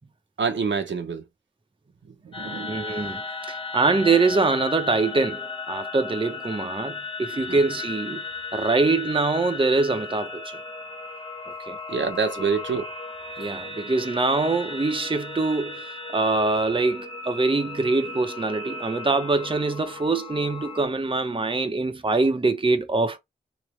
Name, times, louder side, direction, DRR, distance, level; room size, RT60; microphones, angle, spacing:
voice 1, 0.4-1.2 2.2-2.8 7.5-7.6 11.9-12.9, right 5 dB, 70° right, 0.9 m, -26 dB
sound 1, 2.3-20.9, left 3 dB, 25° left, 0.9 m, -36 dB
voice 2, 2.7-8.2 8.5-10.5 11.7-11.8 13.4-23.2, right 3 dB, 25° right, 0.8 m, -24 dB
3.3 x 3.1 x 3.2 m
cardioid pair, 65°, 20 cm